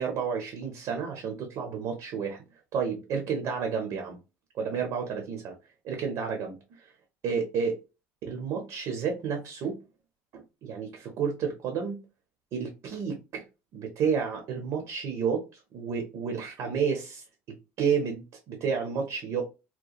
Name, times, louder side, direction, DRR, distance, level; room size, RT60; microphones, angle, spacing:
voice 1, 0.0-2.4 2.7-4.2 4.5-5.5 5.8-6.9 7.2-7.8 8.2-9.8 10.3-12.0 12.5-13.4 13.7-15.5 15.7-17.2 17.8-19.4, right 6 dB, 50° right, 3 dB, 0.6 m, -31 dB
2.8 x 2.2 x 2.4 m, 0.28 s
cardioid pair, 145°, 7 cm